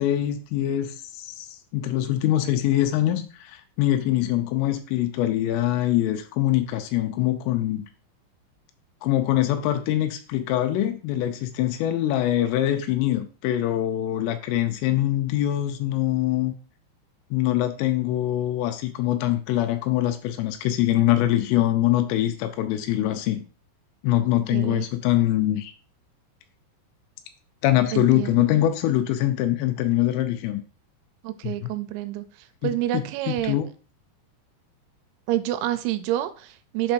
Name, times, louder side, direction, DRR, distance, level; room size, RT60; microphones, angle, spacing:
voice 1, 0.0-1.5 1.7-7.8 9.0-16.5 17.3-23.4 24.0-25.7 27.6-30.6 31.4-31.7 32.6-33.7, left 13 dB, 85° left, 8 dB, 3.0 m, -23 dB
voice 2, 24.5-24.9 27.9-28.5 31.2-32.3 32.6-33.6 35.3-36.9, right 13 dB, 90° right, 11 dB, 3.3 m, -28 dB
7.4 x 5.9 x 2.6 m, 0.37 s
omnidirectional pair, 6.0 m